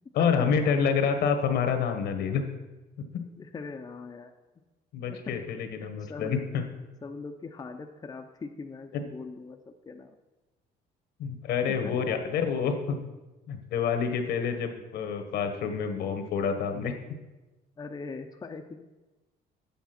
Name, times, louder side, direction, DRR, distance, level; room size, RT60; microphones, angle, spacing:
voice 1, 0.2-2.4 3.1-3.2 4.9-6.6 8.9-9.0 11.2-13.0 13.5-16.9, left 6 dB, 75° left, 6 dB, 1.3 m, -28 dB
voice 2, 3.4-4.3 5.1-5.3 5.8-6.5 7.0-10.2 11.7-11.9 17.8-18.9, left 4 dB, 25° left, 4 dB, 0.5 m, -41 dB
7.2 x 7.1 x 5.9 m, 1.1 s
cardioid pair, 110°, 17 cm